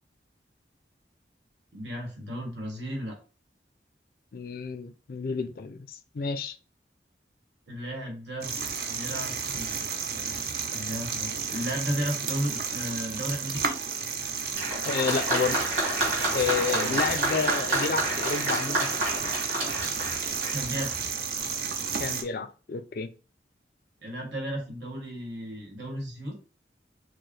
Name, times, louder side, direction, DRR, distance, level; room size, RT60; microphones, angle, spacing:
voice 1, 1.7-3.2 7.7-8.5 8.9-9.8 10.7-13.7 16.7-17.0 20.5-20.9 24.0-26.3, equal, 90° right, 1.4 m, -34 dB
voice 2, 4.3-5.9 6.1-6.6 14.9-15.7 16.3-18.9 22.0-23.1, left 5 dB, 55° left, 0.3 m, -30 dB
sound 1, 8.4-22.2, right 6 dB, 60° right, 0.5 m, -32 dB
Applause, 14.5-21.0 21.9-22.0, right 1 dB, 40° right, 1.9 m, -29 dB
4.6 x 2.0 x 3.1 m
head